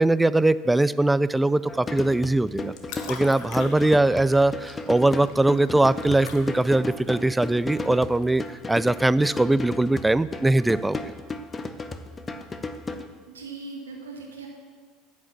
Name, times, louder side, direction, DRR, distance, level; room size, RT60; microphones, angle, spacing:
voice 1, 0.0-2.7 3.1-11.0, right 2 dB, 10° right, 17 dB, 0.3 m, -21 dB
sound 1, 1.7-13.1, left 3 dB, 25° left, 0.8 m, -34 dB
sound 2, 2.3-9.0, left 6 dB, 65° left, 1.3 m, -43 dB
voice 2, 13.3-14.5, right 4 dB, 85° right, -1 dB, 1.5 m, -39 dB
9.4 x 6.2 x 7.2 m, 1.5 s
hypercardioid pair, 75°, 0 cm